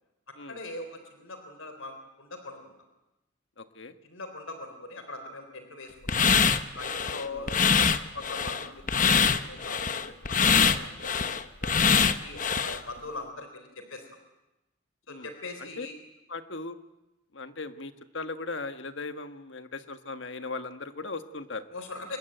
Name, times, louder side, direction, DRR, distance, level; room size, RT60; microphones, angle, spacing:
voice 1, 0.5-1.9 2.2-2.7 4.0-6.4 6.7-7.9 8.1-11.3 11.6-14.0 15.1-15.9 21.7-22.2, left 2 dB, 85° left, 7 dB, 3.9 m, -41 dB
voice 2, 3.6-3.9 7.3-7.5 15.1-15.3 15.6-15.9 16.3-16.8 17.3-21.7, left 3 dB, 65° left, 9 dB, 1.6 m, -38 dB
sound 1, 6.1-12.8, left 6 dB, 40° left, 1.0 m, -24 dB
25.5 x 21.0 x 9.2 m, 0.98 s
head